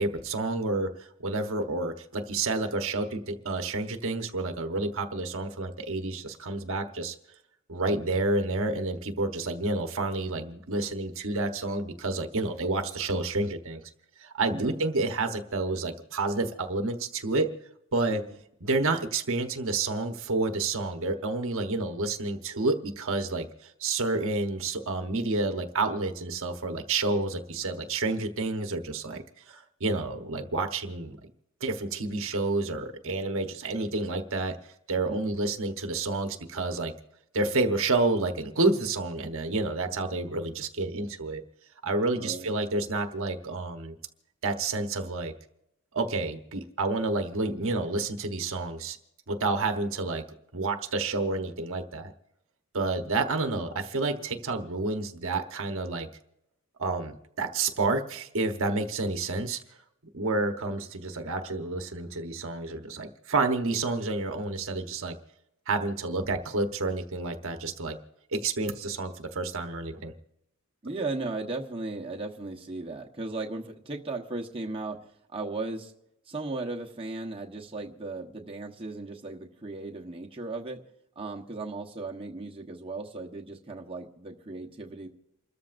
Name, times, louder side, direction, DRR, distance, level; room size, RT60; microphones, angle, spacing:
voice 1, 0.0-7.1 7.7-13.9 14.2-17.5 17.9-18.2 18.6-31.3 31.6-36.9 37.3-41.4 41.8-43.9 44.4-45.3 45.9-49.0 49.3-50.2 50.5-52.1 52.7-56.1 56.8-59.6 60.1-65.2 65.7-68.0 68.3-70.1, right 3 dB, 65° right, 5 dB, 1.2 m, -29 dB
voice 2, 14.5-14.8 18.1-18.4 35.1-35.4 42.1-42.5 53.5-53.7 58.8-58.9 70.8-75.0 75.3-75.9 76.3-80.8 81.2-85.1, right 3 dB, 25° right, -1 dB, 1.1 m, -36 dB
29.0 x 13.5 x 2.6 m, 0.83 s
head